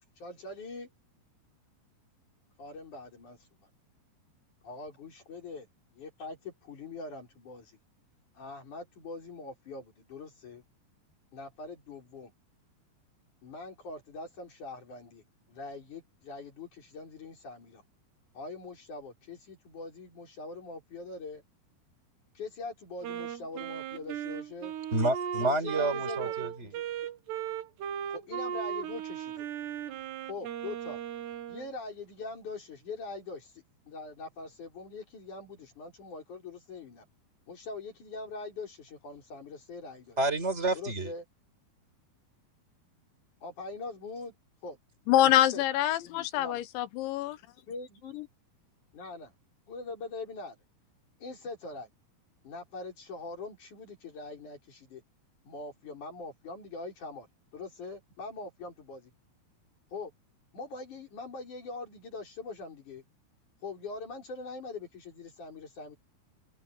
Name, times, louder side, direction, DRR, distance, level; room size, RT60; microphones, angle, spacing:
voice 1, 0.2-0.9 2.6-3.7 4.6-5.7 5.9-7.7 8.3-10.6 11.3-12.3 13.4-15.2 15.5-17.8 18.3-21.4 22.3-24.7 25.4-26.8 28.1-29.5 30.3-31.0 31.5-37.0 37.5-40.2 40.7-41.2 43.4-44.3 44.6-44.8 45.3-45.6 46.4-46.6 47.7-48.3 48.9-49.3 49.7-50.6 51.2-51.9 52.4-55.0 55.4-57.3 57.5-59.1 59.9-60.1 60.5-63.0 63.6-66.0, left 3 dB, 45° left, 6.4 m, -43 dB
Wind instrument woodwind instrument, 23.0-31.7, right 9 dB, 70° right, 3.8 m, -37 dB
voice 2, 24.9-26.7 40.2-41.1, right 2 dB, 15° right, 5.1 m, -29 dB
voice 3, 45.1-47.4, left 13 dB, 85° left, 3.6 m, -25 dB
omnidirectional pair, 5.1 m